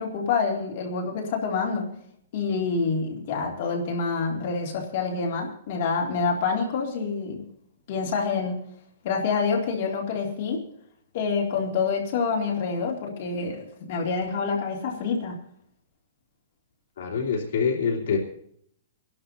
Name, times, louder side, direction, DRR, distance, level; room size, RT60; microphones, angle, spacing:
voice 1, 0.0-1.9 2.3-7.4 7.9-8.6 9.0-10.6 11.1-15.4, left 5 dB, 40° left, -1 dB, 2.5 m, -27 dB
voice 2, 17.0-18.2, left 6 dB, 60° left, -1 dB, 3.0 m, -25 dB
25.5 x 12.0 x 2.8 m, 0.68 s
hypercardioid pair, 170°, 0 cm